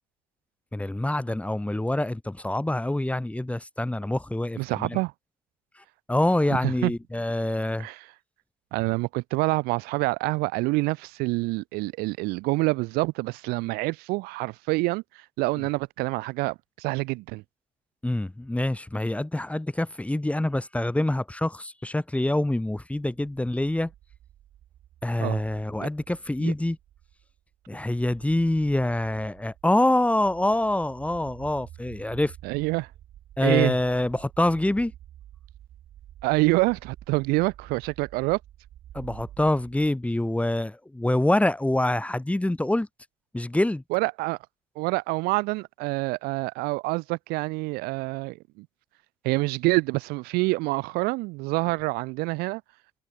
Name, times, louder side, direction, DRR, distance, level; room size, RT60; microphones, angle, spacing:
voice 1, 0.7-5.0 6.1-7.9 18.0-23.9 25.0-26.8 27.7-32.3 33.4-34.9 38.9-42.9 43.3-43.8, left 1 dB, 10° left, 1.6 m, -25 dB
voice 2, 4.6-5.1 6.5-6.9 7.8-8.0 8.7-15.0 15.4-17.4 25.2-25.4 26.4-26.5 32.4-32.9 33.4-33.8 36.2-38.4 43.9-44.4 44.7-48.6 49.2-52.6, right 24 dB, 80° right, 1.3 m, -26 dB
sound 1, 23.3-39.9, right 12 dB, 65° right, 4.4 m, -49 dB
supercardioid pair, 70°, 16 cm